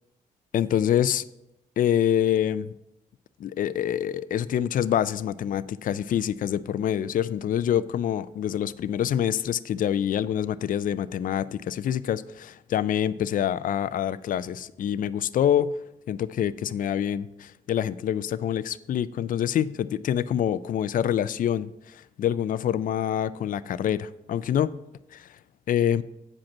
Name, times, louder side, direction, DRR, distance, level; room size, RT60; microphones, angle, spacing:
voice 1, 0.5-1.2 1.8-2.7 3.4-15.8 16.1-24.8 25.1-25.4 25.7-26.0, left 10 dB, 60° left, 16 dB, 0.4 m, -26 dB
7.4 x 5.1 x 7.2 m, 0.88 s
supercardioid pair, 60°, 16 cm